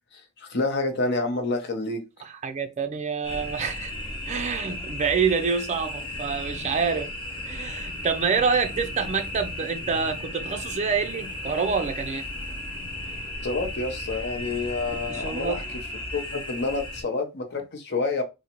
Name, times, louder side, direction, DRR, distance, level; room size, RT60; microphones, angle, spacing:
voice 1, 0.1-2.0 13.4-15.8 16.1-18.2, left 3 dB, 50° left, 0.8 m, -28 dB
voice 2, 2.2-3.9 4.3-7.1 7.4-12.3 15.1-15.6, right 5 dB, 30° right, 0.4 m, -27 dB
sound 1, 3.2-17.0, left 1 dB, 20° left, 0.8 m, -35 dB
3.7 x 2.1 x 3.0 m
head